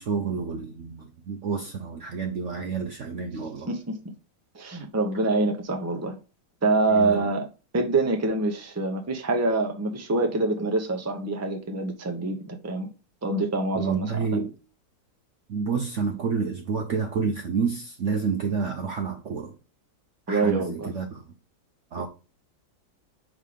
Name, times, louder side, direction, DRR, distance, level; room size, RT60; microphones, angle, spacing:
voice 1, 0.0-3.7 6.9-7.3 13.7-14.5 15.5-19.6 20.3-21.2 21.9-22.1, right 5 dB, 60° right, 0.8 m, -29 dB
voice 2, 3.6-3.9 4.5-6.2 6.6-7.5 7.7-12.9 13.2-14.2 20.3-20.9, right 3 dB, 15° right, 0.6 m, -25 dB
5.5 x 3.7 x 4.9 m
omnidirectional pair, 1.9 m